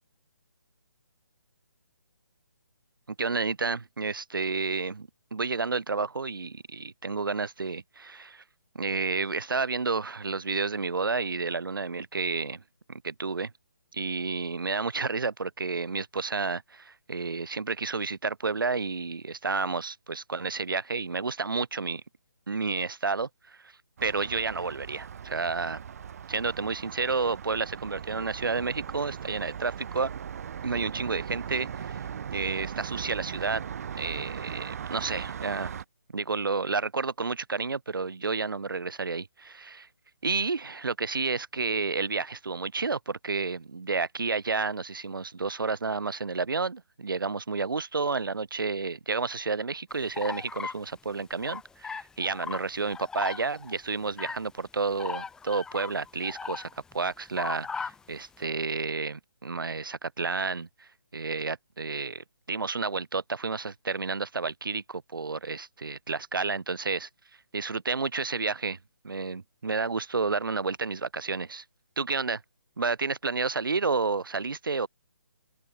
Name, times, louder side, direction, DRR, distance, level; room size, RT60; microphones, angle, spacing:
voice 1, 3.1-8.4 8.7-12.6 12.9-13.5 13.9-22.0 22.5-23.6 24.0-25.8 26.3-30.1 30.6-32.0 32.3-33.6 33.9-35.7 36.1-39.9 40.2-67.1 67.5-68.8 69.0-71.6 72.0-72.4 72.8-74.9, right 4 dB, 85° right, 0.8 m, -31 dB
sound 1, 24.0-35.8, right 8 dB, 45° right, 2.6 m, -39 dB
sound 2, 50.1-50.8 51.4-52.6 52.9-53.8 54.1-54.4 55.0-57.0 57.3-58.0, left 5 dB, 5° left, 2.8 m, -37 dB
open air
figure-of-eight pair, 150°, 11 cm